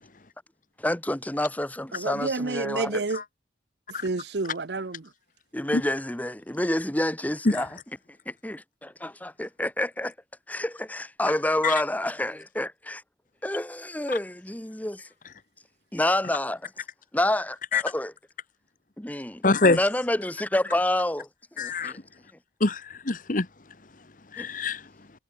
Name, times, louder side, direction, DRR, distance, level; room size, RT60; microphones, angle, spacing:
voice 1, 0.8-3.0 5.5-7.7 8.3-10.1 10.5-13.0 13.4-15.1 15.9-16.7 17.1-18.1 19.0-19.4 19.7-21.3 21.6-22.0 24.4-24.5, left 1 dB, 10° left, 1.0 m, -28 dB
voice 2, 1.9-3.2 3.9-5.1, right 3 dB, 65° right, 0.9 m, -30 dB
voice 3, 19.4-19.8 21.6-21.9 22.6-23.5 24.3-24.9, left 3 dB, 45° left, 1.2 m, -24 dB
head